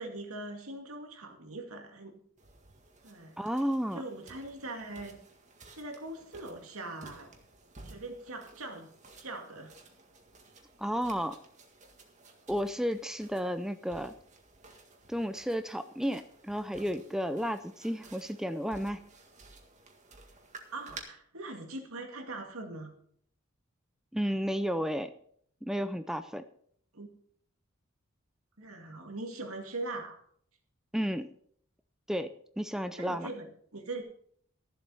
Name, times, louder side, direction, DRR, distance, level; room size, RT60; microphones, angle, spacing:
voice 1, 0.0-2.2 3.0-3.3 3.9-5.2 5.7-7.3 7.8-8.9 9.2-9.7 20.7-22.9 26.9-27.1 28.6-30.2 33.0-34.0, right 2 dB, 85° right, 3 dB, 2.3 m, -41 dB
sound 1, 2.4-21.0, right 3 dB, 35° right, 1.8 m, -54 dB
voice 2, 3.4-4.0 10.8-11.4 12.5-14.1 15.1-19.1 24.1-25.1 25.6-26.4 30.9-31.3 32.1-33.3, equal, ahead, 10 dB, 0.4 m, -32 dB
13.5 x 7.5 x 5.5 m, 0.63 s
head